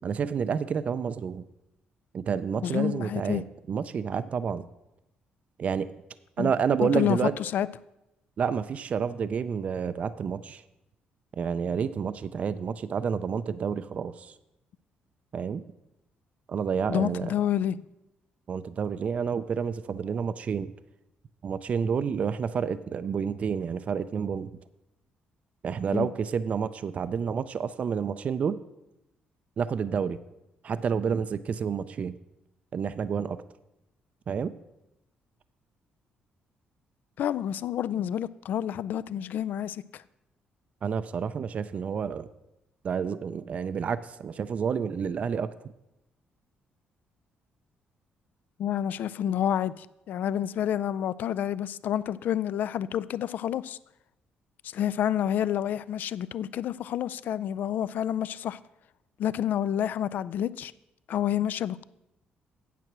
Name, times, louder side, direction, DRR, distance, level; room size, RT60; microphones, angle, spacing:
voice 1, 0.0-1.4 2.1-4.6 5.6-5.9 6.4-7.3 8.4-10.6 11.3-14.3 15.3-15.6 16.5-17.3 18.5-20.7 21.4-24.5 25.6-28.6 29.6-30.2 30.6-32.1 32.7-33.4 34.3-34.5 40.8-42.3 42.8-45.7, right 6 dB, 45° right, 0.4 m, -29 dB
voice 2, 2.6-3.4 6.4-6.5 6.8-7.7 16.9-17.8 25.9-26.1 37.2-40.0 48.6-53.8 54.6-58.6 59.2-60.7 61.1-61.8, left 10 dB, 70° left, 0.3 m, -29 dB
9.2 x 7.6 x 6.0 m
cardioid pair, 115°, 3 cm